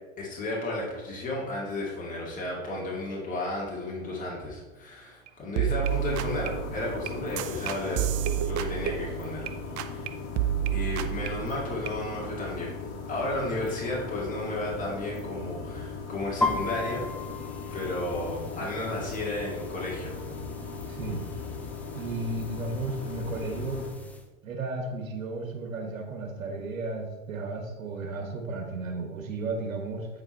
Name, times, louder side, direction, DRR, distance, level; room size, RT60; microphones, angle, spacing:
voice 1, 0.2-8.1 8.4-9.4 9.9-10.2 10.6-12.8 13.1-17.0 17.7-20.2, left 2 dB, 20° left, -4 dB, 2.3 m, -33 dB
sound 1, 5.3-5.4 5.6-9.5 9.8-10.1 10.4-12.0, right 12 dB, 40° right, 0.6 m, -30 dB
sound 2, 5.8-23.9, left 4 dB, 55° left, 1.9 m, -38 dB
sound 3, 16.4-24.2, left 3 dB, 5° left, 0.3 m, -37 dB
voice 2, 20.9-21.2 21.9-23.9 24.4-30.1, right 3 dB, 80° right, 3 dB, 1.5 m, -34 dB
8.5 x 4.8 x 4.5 m, 1.2 s
hypercardioid pair, 110°, 40 cm